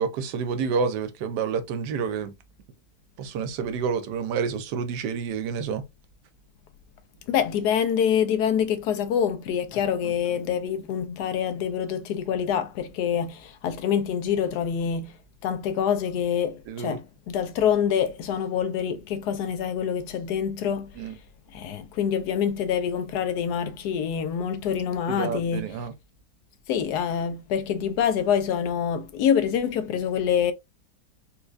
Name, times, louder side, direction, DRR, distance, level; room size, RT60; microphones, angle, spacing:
voice 1, 0.0-2.3 3.2-5.8 16.7-17.0 21.0-21.1 25.1-25.9, right 6 dB, 75° right, 1.2 m, -29 dB
voice 2, 7.3-15.1 15.4-20.9 21.5-25.7 26.7-30.5, left 8 dB, 75° left, 1.1 m, -26 dB
4.4 x 2.3 x 2.4 m
omnidirectional pair, 1.9 m